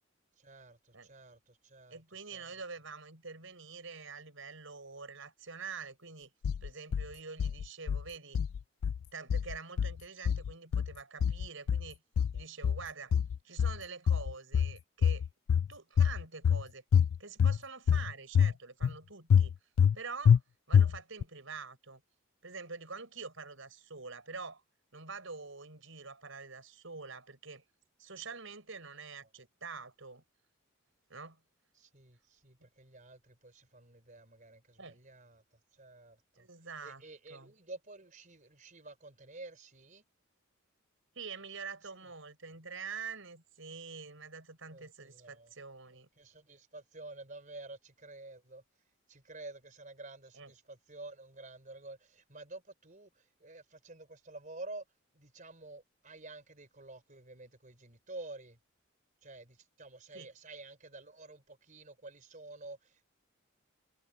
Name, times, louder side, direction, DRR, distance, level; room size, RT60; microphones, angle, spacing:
voice 1, 0.4-2.0 2.3-2.6 31.7-35.4 35.7-36.5 36.8-40.0 44.7-45.5 46.2-48.6 49.1-54.8 55.1-58.6 59.2-63.1, right 2 dB, 40° right, 4.3 m, -50 dB
voice 2, 1.9-6.3 6.6-8.4 9.1-12.0 12.3-13.1 13.4-15.3 15.7-16.8 17.2-19.5 19.9-20.4 20.7-22.0 22.4-24.6 24.9-27.6 28.0-30.2 31.1-31.4 32.6-32.7 34.8-35.0 36.4-37.0 37.3-37.5 41.1-46.1 50.3-50.5 60.1-60.3, right 5 dB, 70° right, 6.5 m, -46 dB
sound 1, 6.4-7.1 7.4-8.0 8.4-9.0 9.3-10.0 10.3-10.9 11.2-11.9 12.2-12.9 13.1-13.8 14.1-14.8 15.0-15.7 16.0-16.6 16.9-17.6 17.9-18.5 18.8-18.9 19.3-20.0 20.3-20.4 20.7-21.2, left 7 dB, 75° left, 0.3 m, -26 dB
head